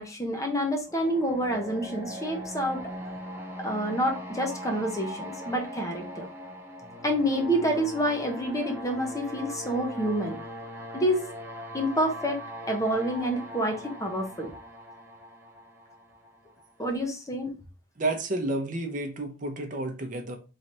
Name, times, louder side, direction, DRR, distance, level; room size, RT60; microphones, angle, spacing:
voice 1, 0.0-2.8 3.6-6.3 7.0-10.4 10.9-11.2 11.7-14.5 16.8-17.5, equal, 15° left, 0.8 m, -28 dB
sound 1, 0.9-16.7, equal, 10° right, 1.0 m, -40 dB
voice 2, 18.0-20.4, right 2 dB, 40° right, 0.8 m, -30 dB
3.9 x 3.3 x 4.2 m
head